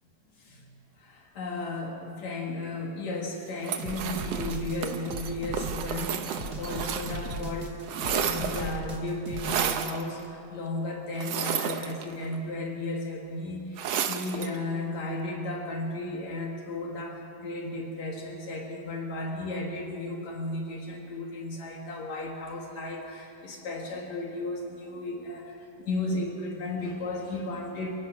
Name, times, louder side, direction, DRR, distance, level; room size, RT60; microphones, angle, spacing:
voice 1, 1.0-28.0, left 2 dB, 70° left, 0 dB, 3.3 m, -34 dB
sound 1, 3.6-7.4 7.7-8.8 9.4-10.0 11.2-12.4 13.8-14.6, right 8 dB, 65° right, 2.0 m, -32 dB
sound 2, 3.8-9.6, right 2 dB, 35° right, 1.8 m, -38 dB
29.0 x 17.0 x 6.2 m, 2.7 s
omnidirectional pair, 3.3 m